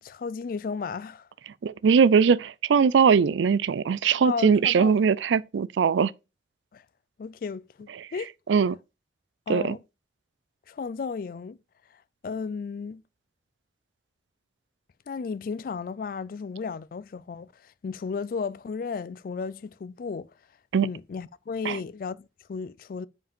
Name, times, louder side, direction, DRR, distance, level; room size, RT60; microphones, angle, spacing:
voice 1, 0.0-1.3 4.2-5.0 6.7-6.8 7.2-8.3 9.5-9.8 10.7-11.6 12.2-13.0 15.1-20.3 20.8-23.1, left 5 dB, 50° left, 0.3 m, -34 dB
voice 2, 1.6-6.1 8.0-8.1 8.5-8.8 9.5-9.8 20.7-20.9 21.6-21.8, right 6 dB, 85° right, 0.4 m, -21 dB
5.1 x 4.9 x 5.1 m
head